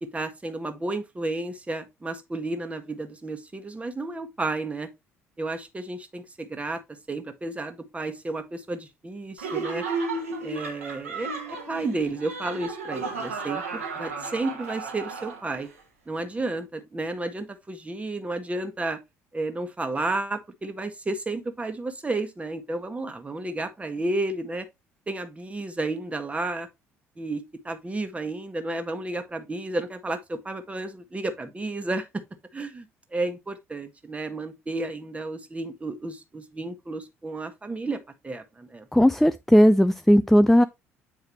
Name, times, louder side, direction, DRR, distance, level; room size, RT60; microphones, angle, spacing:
voice 1, 0.0-4.9 5.4-6.8 7.1-9.9 10.4-13.6 13.9-15.7 16.1-19.0 19.3-24.6 25.1-26.7 27.2-32.2 32.5-32.8 33.1-38.8, right 2 dB, 15° right, 1.3 m, -32 dB
Laughter, 9.4-15.7, right 4 dB, 75° right, 1.3 m, -33 dB
voice 2, 38.9-40.6, equal, 5° left, 0.3 m, -17 dB
8.1 x 4.7 x 3.0 m
figure-of-eight pair, 55°, 7 cm